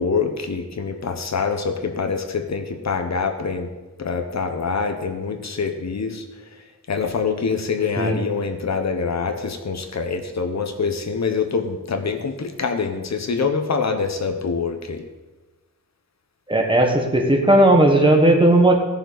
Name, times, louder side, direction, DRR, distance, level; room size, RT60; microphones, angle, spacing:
voice 1, 0.0-3.7 4.0-6.2 6.9-15.0, left 5 dB, 55° left, 6 dB, 1.0 m, -25 dB
voice 2, 16.5-18.7, right 1 dB, 15° right, 1 dB, 1.4 m, -15 dB
16.5 x 6.9 x 4.0 m, 1.2 s
wide cardioid pair, 155°, 32 cm